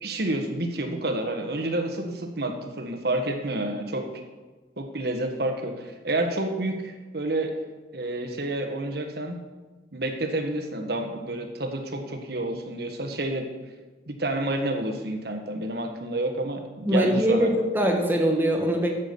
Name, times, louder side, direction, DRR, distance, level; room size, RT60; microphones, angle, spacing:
voice 1, 0.0-4.1 4.8-7.5 7.9-9.4 9.9-13.5 14.1-17.7, right 1 dB, 55° right, 4 dB, 1.5 m, -29 dB
voice 2, 16.8-18.9, equal, 10° right, 1 dB, 1.6 m, -22 dB
10.5 x 7.3 x 7.1 m, 1.2 s
head